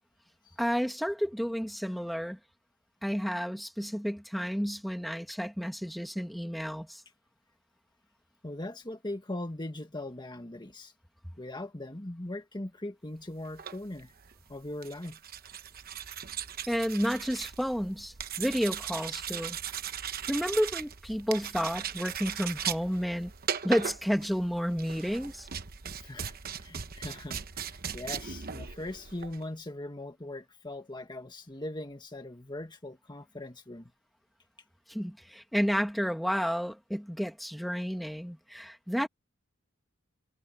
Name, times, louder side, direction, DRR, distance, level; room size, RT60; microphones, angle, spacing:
voice 1, 0.6-2.4 3.0-7.0 16.7-19.6 20.3-23.3 23.6-25.5 34.9-39.1, equal, ahead, 1.9 m, -31 dB
voice 2, 8.4-10.9 11.4-14.1 14.5-15.2 26.0-33.9, left 1 dB, 20° left, 1.7 m, -40 dB
sound 1, 13.4-29.4, right 8 dB, 45° right, 1.0 m, -39 dB
head